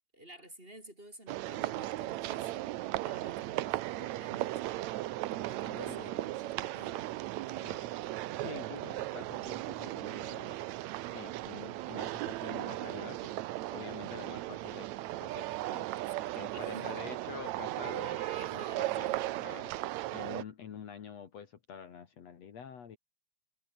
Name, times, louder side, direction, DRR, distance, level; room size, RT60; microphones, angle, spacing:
voice 1, 0.1-4.8 5.3-7.1 7.4-7.7 16.0-17.0 18.0-19.4, right 1 dB, 15° right, 6.0 m, -52 dB
sound 1, 1.3-20.4, right 16 dB, 75° right, 1.9 m, -37 dB
voice 2, 5.7-6.1 7.6-7.9 8.3-10.7 11.1-13.3 13.7-15.9 16.3-19.1 19.4-23.0, left 7 dB, 60° left, 2.8 m, -47 dB
omnidirectional pair, 3.6 m